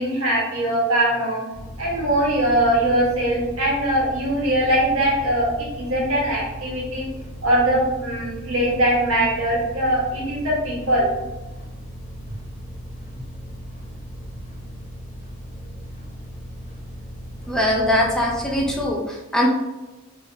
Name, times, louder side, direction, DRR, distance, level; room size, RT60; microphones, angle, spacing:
voice 1, 0.0-1.4 1.8-7.1 7.4-11.1, right 1 dB, 85° right, -4 dB, 1.3 m, -21 dB
sound 1, 1.5-18.9, equal, 35° left, 0.8 m, -37 dB
voice 2, 17.5-19.5, left 1 dB, 5° left, -2 dB, 0.5 m, -21 dB
3.5 x 3.1 x 2.7 m, 1.1 s
head